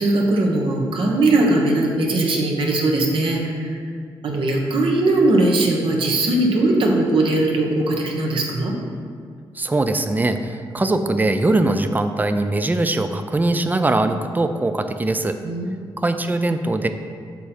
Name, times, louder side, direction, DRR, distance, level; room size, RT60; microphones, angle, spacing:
voice 1, 0.0-3.7 4.2-8.8 15.4-16.0, right 2 dB, 70° right, 0 dB, 1.2 m, -20 dB
voice 2, 9.5-15.4 16.0-16.9, right 2 dB, 20° right, 8 dB, 0.5 m, -21 dB
7.2 x 4.3 x 4.3 m, 2.1 s
cardioid pair, 65°, 9 cm